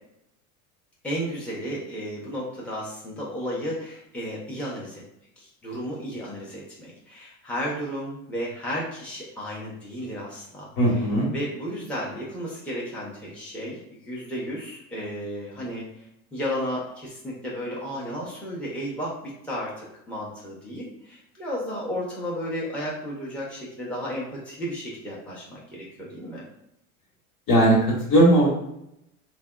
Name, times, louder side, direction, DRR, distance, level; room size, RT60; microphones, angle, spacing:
voice 1, 1.0-5.0 5.4-11.0 11.3-26.4, equal, 5° left, -6 dB, 0.7 m, -33 dB
voice 2, 10.8-11.3 27.5-28.5, right 1 dB, 55° left, -3 dB, 1.3 m, -18 dB
3.3 x 2.3 x 2.2 m, 0.80 s
hypercardioid pair, 85°, 44 cm